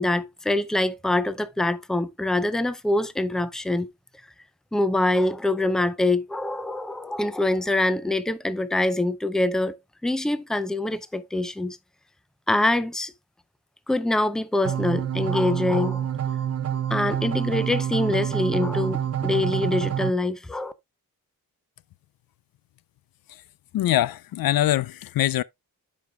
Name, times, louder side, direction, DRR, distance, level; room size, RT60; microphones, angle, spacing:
voice 1, 0.0-3.9 4.7-9.8 10.0-11.8 12.5-13.1 13.9-16.1 16.9-20.7, left 2 dB, ahead, 0.5 m, -24 dB
sound 1, 14.6-20.1, right 9 dB, 45° right, 0.6 m, -27 dB
voice 2, 23.7-25.4, left 13 dB, 75° left, 0.5 m, -23 dB
12.5 x 5.3 x 2.2 m
wide cardioid pair, 165°, 35 cm